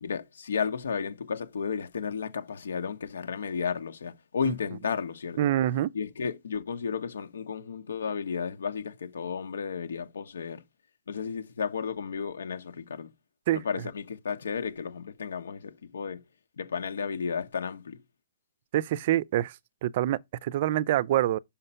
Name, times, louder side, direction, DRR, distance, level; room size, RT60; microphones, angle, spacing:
voice 1, 0.0-5.4 5.9-10.6 11.1-13.1 13.5-16.2 16.6-18.0, left 6 dB, 85° left, 1.2 m, -33 dB
voice 2, 5.4-5.9 13.5-13.6 18.7-19.5 19.8-21.4, right 13 dB, 40° right, 0.4 m, -25 dB
5.7 x 5.5 x 5.6 m
hypercardioid pair, 160°, 0 cm